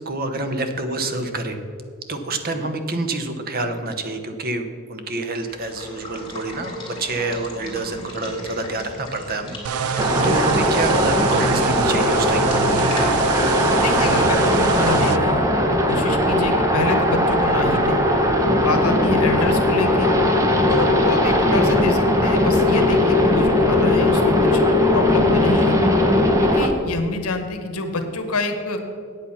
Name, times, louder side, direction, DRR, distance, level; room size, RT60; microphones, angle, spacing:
voice 1, 0.0-1.6 2.1-12.6 18.4-18.7, right 2 dB, 45° right, 7 dB, 0.9 m, -27 dB
Water / Water tap faucet / Liquid, 5.3-14.9, left 1 dB, 20° left, 2.7 m, -37 dB
sound 1, 9.6-15.2, right 7 dB, 75° right, 0.4 m, -25 dB
sound 2, 10.0-26.7, left 1 dB, 15° right, 0.9 m, -18 dB
voice 2, 13.8-15.4 15.9-18.0 18.6-20.1 20.7-24.6 24.9-25.8 26.4-28.8, left 3 dB, 85° left, 6 dB, 1.2 m, -27 dB
8.7 x 8.5 x 5.7 m, 2.2 s
head